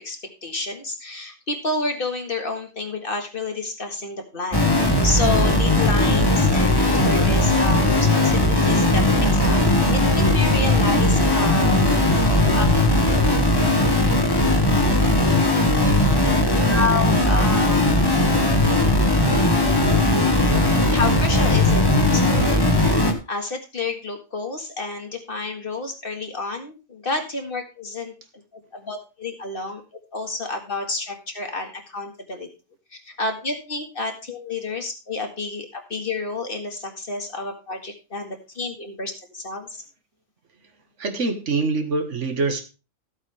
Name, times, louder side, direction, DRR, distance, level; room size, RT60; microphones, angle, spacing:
voice 1, 0.0-9.6 9.9-11.8 12.1-12.7 16.7-18.0 20.9-22.5 22.8-28.1 28.7-29.8 30.1-32.5 33.1-39.8, left 3 dB, 50° left, 4 dB, 2.0 m, -29 dB
sound 1, 4.5-23.1, left 1 dB, 20° left, 1.5 m, -18 dB
voice 2, 41.0-42.6, right 3 dB, 85° right, 6 dB, 1.8 m, -24 dB
14.0 x 8.3 x 3.4 m, 0.31 s
omnidirectional pair, 1.2 m